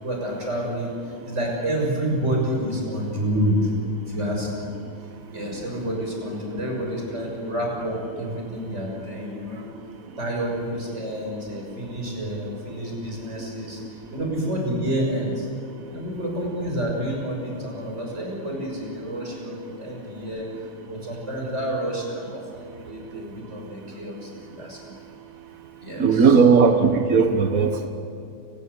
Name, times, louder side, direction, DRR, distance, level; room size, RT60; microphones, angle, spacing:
voice 1, 0.0-3.7 4.1-4.7 5.3-9.6 10.2-13.8 14.1-15.5 15.9-20.5 20.9-24.8 25.8-26.4, equal, 20° right, 0 dB, 6.6 m, -29 dB
voice 2, 26.0-27.9, right 5 dB, 65° right, 6 dB, 0.8 m, -17 dB
29.5 x 18.0 x 8.3 m, 2.5 s
omnidirectional pair, 3.6 m